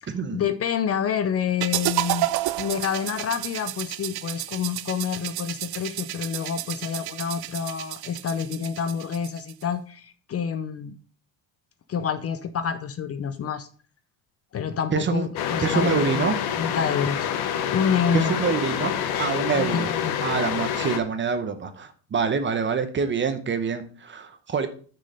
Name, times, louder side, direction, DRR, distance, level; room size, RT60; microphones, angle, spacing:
voice 1, 0.0-2.3 2.6-10.9 11.9-13.7 14.5-16.2 16.5-17.3 17.7-18.3 19.5-20.2, left 7 dB, 35° left, 12 dB, 0.6 m, -28 dB
sound 1, 1.6-9.6, right 16 dB, 65° right, 0.5 m, -31 dB
voice 2, 14.9-15.3 15.6-16.4 18.1-18.9 19.2-19.9 20.2-24.7, right 5 dB, 30° right, 9 dB, 0.9 m, -26 dB
sound 2, 15.4-21.0, left 9 dB, 65° left, 1.1 m, -27 dB
6.5 x 6.3 x 5.3 m, 0.42 s
cardioid pair, 155°, 41 cm